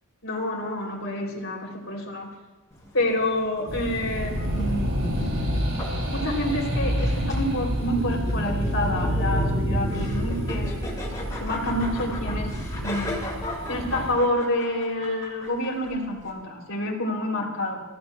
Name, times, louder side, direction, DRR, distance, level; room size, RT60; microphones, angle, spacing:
voice 1, 0.2-2.3 2.9-5.1 6.1-10.8 11.4-12.6 12.8-13.2 13.7-17.8, left 1 dB, 65° left, 0 dB, 3.6 m, -28 dB
sound 1, 2.7-16.3, left 1 dB, 15° left, 6.0 m, -38 dB
sound 2, 3.7-14.1, equal, 90° right, 6.7 m, -28 dB
30.0 x 16.0 x 2.4 m, 1.2 s
head